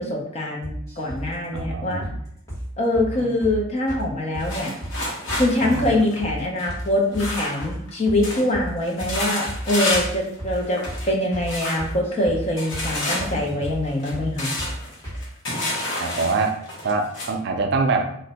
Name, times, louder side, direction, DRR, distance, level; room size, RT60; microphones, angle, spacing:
voice 1, 0.0-2.0 2.8-4.7 5.4-14.5, left 1 dB, 30° left, -1 dB, 0.5 m, -24 dB
sound 1, 0.6-1.2 1.6-1.7 2.0-2.2 2.5-2.6 2.9-3.1 3.4-3.6 3.9-4.0 4.3-5.0 5.3-5.4 5.7-5.9 6.2-6.4 6.7-6.8 7.1-7.3 7.6-7.8 8.1-8.7 9.0-9.2 9.5-9.6 9.9-10.1 10.4-10.6 10.9-11.0 11.3-11.5 11.8-12.4 12.7-12.9 13.2-13.3 13.6-13.8 14.1-14.3 14.6-14.7 15.0-15.2, equal, 15° left, 1.3 m, -33 dB
voice 2, 1.5-2.2 3.2-3.3 5.6-5.9 13.4-13.6 16.0-18.2, right 3 dB, 55° right, 5 dB, 0.3 m, -25 dB
sound 2, 4.4-7.9 8.2-8.5 8.8-10.2 10.5-11.1 11.5-11.9 12.6-17.3, left 1 dB, 60° left, 0.9 m, -29 dB
2.5 x 2.1 x 3.9 m, 0.73 s
head